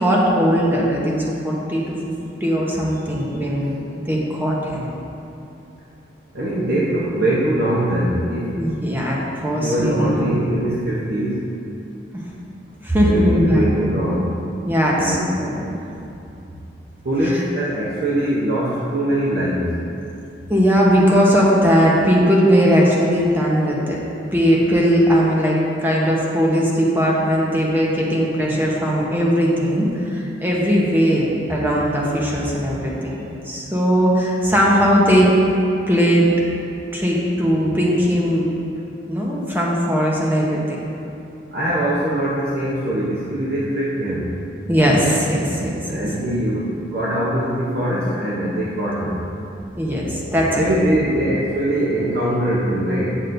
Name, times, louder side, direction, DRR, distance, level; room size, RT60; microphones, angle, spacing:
voice 1, 0.0-2.0 2.4-4.9 8.6-10.4 12.8-13.7 14.6-15.7 20.5-24.0 24.3-33.2 33.4-35.3 35.9-36.3 36.9-38.5 39.1-40.8 44.7-46.1 49.8-50.6, equal, 10° right, -4 dB, 1.0 m, -18 dB
voice 2, 6.3-8.6 9.6-11.5 13.0-14.4 14.9-15.4 17.0-19.8 41.5-44.3 45.9-49.3 49.9-50.0 50.6-53.2, right 1 dB, 55° right, -7 dB, 0.8 m, -22 dB
9.6 x 6.2 x 2.6 m, 2.7 s
head